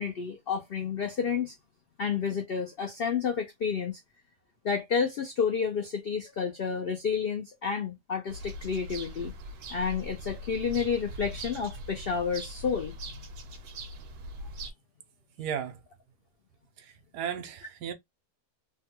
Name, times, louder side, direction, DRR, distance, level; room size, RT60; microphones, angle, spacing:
voice 1, 0.0-1.5 2.0-4.0 4.6-9.3 9.7-12.9, left 6 dB, 90° left, 0.5 m, -30 dB
sound 1, 8.3-14.7, right 1 dB, 70° right, 1.2 m, -41 dB
voice 2, 15.4-15.8 16.8-17.9, right 8 dB, 90° right, 1.3 m, -35 dB
3.4 x 2.2 x 2.8 m
omnidirectional pair, 1.7 m